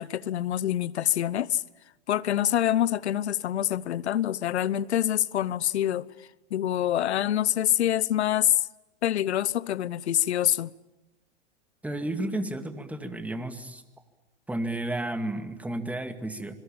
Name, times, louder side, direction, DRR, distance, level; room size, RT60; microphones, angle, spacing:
voice 1, 0.0-1.6 2.1-6.1 6.5-8.7 9.0-10.7, left 11 dB, 80° left, 0.9 m, -26 dB
voice 2, 11.8-13.8 14.5-16.6, right 1 dB, 5° right, 2.1 m, -32 dB
26.0 x 23.0 x 8.8 m
hypercardioid pair, 130°, 33 cm